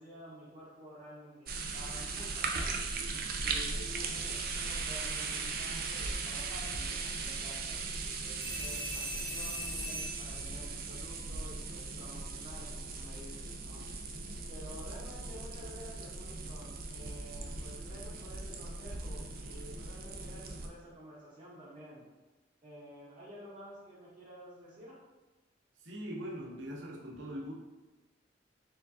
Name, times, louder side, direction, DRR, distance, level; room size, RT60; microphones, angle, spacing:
voice 1, 0.0-2.8 3.4-13.8 14.5-22.1 22.6-25.0, equal, 30° right, -10 dB, 1.2 m, -51 dB
sound 1, 1.5-20.7, right 4 dB, 55° right, 0.5 m, -38 dB
sound 2, 8.4-10.4 12.8-13.0, left 1 dB, 30° left, 1.2 m, -40 dB
voice 2, 25.8-27.5, equal, 85° right, -1 dB, 0.9 m, -41 dB
4.5 x 3.8 x 2.7 m, 1.2 s
head